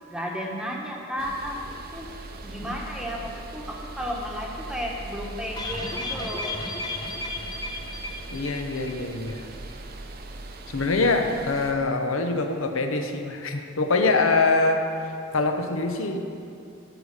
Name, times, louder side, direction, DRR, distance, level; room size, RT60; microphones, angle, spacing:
voice 1, 0.1-2.1 2.4-6.6, equal, 5° right, -2 dB, 1.1 m, -33 dB
sound 1, 1.2-11.7, right 2 dB, 45° right, 0.6 m, -40 dB
sound 2, 5.6-9.0 9.3-9.4 9.7-9.8, left 2 dB, 20° left, 0.7 m, -33 dB
voice 2, 8.3-9.5 10.7-16.3, left 3 dB, 75° left, 5 dB, 0.8 m, -24 dB
14.0 x 4.9 x 6.5 m, 2.5 s
head